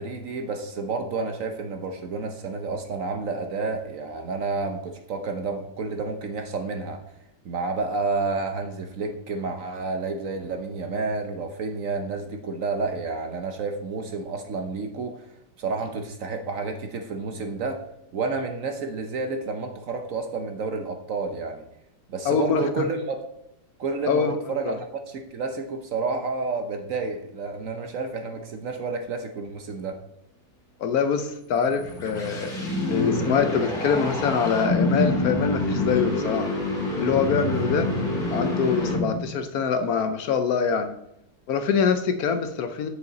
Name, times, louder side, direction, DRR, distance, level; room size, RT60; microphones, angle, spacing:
voice 1, 0.0-7.0 7.4-15.3 15.6-17.8 18.1-21.7 22.1-23.2 23.8-30.0, right 3 dB, 60° right, 5 dB, 1.0 m, -30 dB
voice 2, 22.3-22.8 24.1-24.3 24.7-24.8 30.8-32.5 32.9-36.5 37.0-37.9 38.3-40.9 41.5-42.9, left 6 dB, 65° left, 8 dB, 1.0 m, -24 dB
sound 1, 31.6-39.4, left 1 dB, 45° left, 2.6 m, -26 dB
8.0 x 6.6 x 4.0 m, 0.79 s
omnidirectional pair, 1.9 m